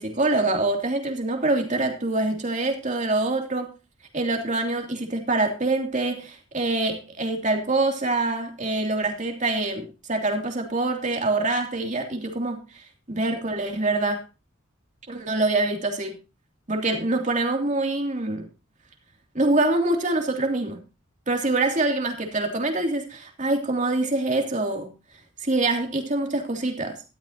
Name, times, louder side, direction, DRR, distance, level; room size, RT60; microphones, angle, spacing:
voice 1, 0.0-3.7 4.1-12.6 13.1-14.2 15.1-16.2 16.7-18.5 19.3-20.8 21.3-24.9 25.4-27.0, right 2 dB, 40° right, 2.9 m, -25 dB
13.0 x 12.5 x 2.9 m
head